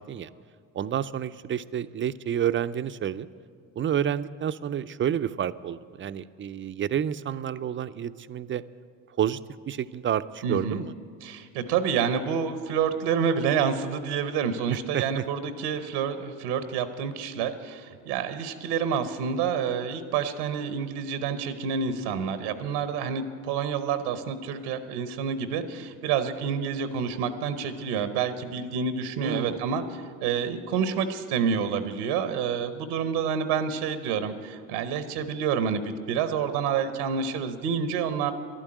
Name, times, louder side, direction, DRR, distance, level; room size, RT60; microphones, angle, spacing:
voice 1, 0.7-3.3 3.8-8.6 9.2-9.4 9.7-10.9 14.7-15.2 29.2-29.6, right 9 dB, 30° right, 14 dB, 0.4 m, -29 dB
voice 2, 10.4-10.8 11.2-38.3, right 7 dB, 90° right, 11 dB, 0.8 m, -28 dB
11.5 x 8.9 x 8.7 m, 2.3 s
supercardioid pair, 70°, 43 cm